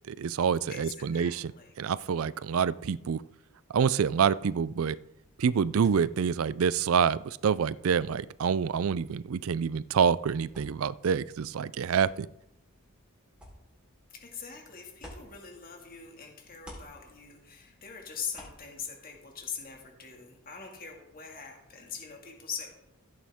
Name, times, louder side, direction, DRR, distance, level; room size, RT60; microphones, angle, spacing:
voice 1, 0.1-1.5 1.8-3.2 3.7-5.0 5.4-12.3, right 7 dB, 70° right, 18 dB, 0.4 m, -27 dB
voice 2, 0.7-1.7 14.1-22.7, left 6 dB, 40° left, 1 dB, 2.1 m, -42 dB
sound 1, 10.4-16.1 16.4-19.8, equal, 5° right, 3.8 m, -56 dB
15.5 x 8.8 x 3.6 m, 0.84 s
head